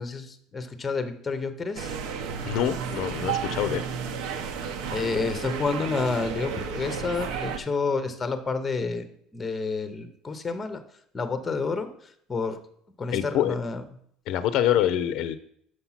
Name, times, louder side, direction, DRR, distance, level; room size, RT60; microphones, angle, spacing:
voice 1, 0.0-1.9 4.9-10.8 11.1-11.9 12.3-12.6 13.0-13.8, left 4 dB, 15° left, 9 dB, 0.7 m, -29 dB
sound 1, 1.8-7.6, right 6 dB, 75° right, 0.9 m, -32 dB
voice 2, 2.4-3.8 13.1-13.6 14.3-15.4, left 11 dB, 55° left, 11 dB, 0.5 m, -25 dB
6.5 x 5.9 x 5.6 m, 0.67 s
cardioid pair, 175°, 0 cm